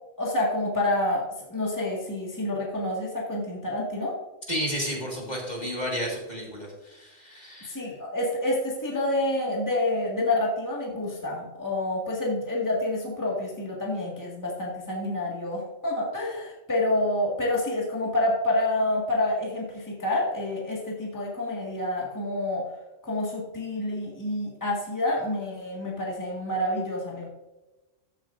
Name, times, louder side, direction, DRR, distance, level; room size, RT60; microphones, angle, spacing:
voice 1, 0.2-1.2 1.5-4.1 7.7-22.6 23.0-27.3, left 1 dB, 15° left, -4 dB, 1.8 m, -28 dB
voice 2, 4.5-7.8, equal, 35° left, -2 dB, 2.0 m, -32 dB
14.0 x 7.5 x 2.5 m, 1.0 s
omnidirectional pair, 1.3 m